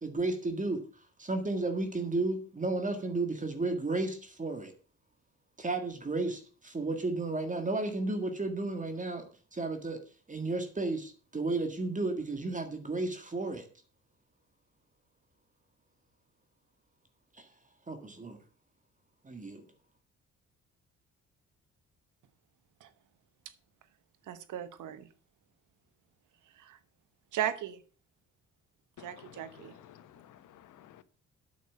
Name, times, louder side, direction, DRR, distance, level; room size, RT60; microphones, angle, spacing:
voice 1, 0.0-0.8 1.2-4.7 5.6-10.0 10.3-13.7 17.4-17.5 17.9-18.4 19.2-19.6, right 2 dB, 25° right, 6 dB, 1.9 m, -33 dB
voice 2, 24.3-25.1 26.6-26.8 27.3-27.8 29.0-29.7, right 11 dB, 80° right, 13 dB, 1.3 m, -36 dB
voice 3, 29.0-29.3 29.8-31.0, left 11 dB, 80° left, 13 dB, 1.1 m, -54 dB
9.2 x 6.4 x 7.3 m, 0.39 s
cardioid pair, 95°, 30 cm